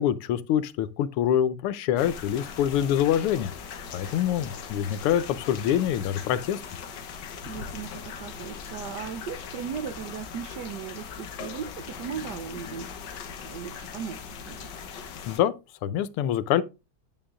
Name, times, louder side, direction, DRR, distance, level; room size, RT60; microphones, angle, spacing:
voice 1, 0.0-3.5 3.9-6.6 15.3-15.5 15.8-16.6, left 10 dB, 85° left, 1.6 m, -25 dB
sound 1, 2.0-15.4, left 6 dB, 60° left, 1.5 m, -40 dB
voice 2, 7.4-13.0 13.4-14.7, right 8 dB, 70° right, 1.0 m, -37 dB
9.2 x 8.7 x 2.4 m
omnidirectional pair, 2.4 m